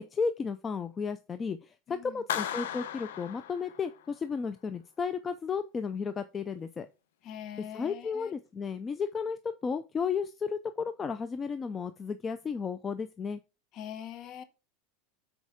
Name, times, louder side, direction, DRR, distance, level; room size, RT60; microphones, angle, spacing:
voice 1, 0.0-6.9 7.7-13.4, left 5 dB, 25° left, 0.5 m, -33 dB
voice 2, 1.9-2.2 7.2-8.3 13.7-14.4, left 9 dB, 45° left, 1.2 m, -43 dB
Clapping, 2.3-4.2, left 10 dB, 85° left, 0.9 m, -36 dB
6.3 x 4.6 x 5.1 m
supercardioid pair, 125°, 0 cm